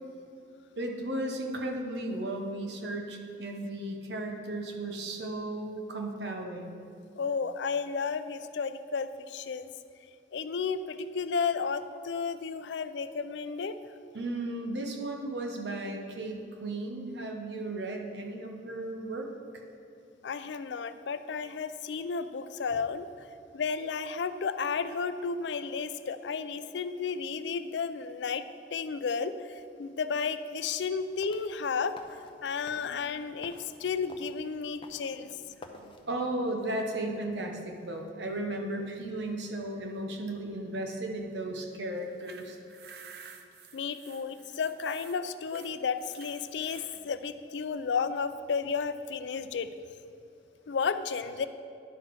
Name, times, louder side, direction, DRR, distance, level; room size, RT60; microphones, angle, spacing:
voice 1, 0.8-6.8 14.1-19.3 35.6-42.6, right 1 dB, 80° right, 2 dB, 1.0 m, -35 dB
voice 2, 7.2-9.7 10.3-13.9 20.2-23.1 23.5-28.4 28.7-35.4 43.7-49.7 50.7-51.5, left 5 dB, 90° left, 12 dB, 0.4 m, -33 dB
sound 1, 31.0-36.1, left 2 dB, 30° left, 0.6 m, -52 dB
sound 2, 42.0-47.0, right 7 dB, 60° right, 0.6 m, -51 dB
10.5 x 6.1 x 4.7 m, 2.6 s
head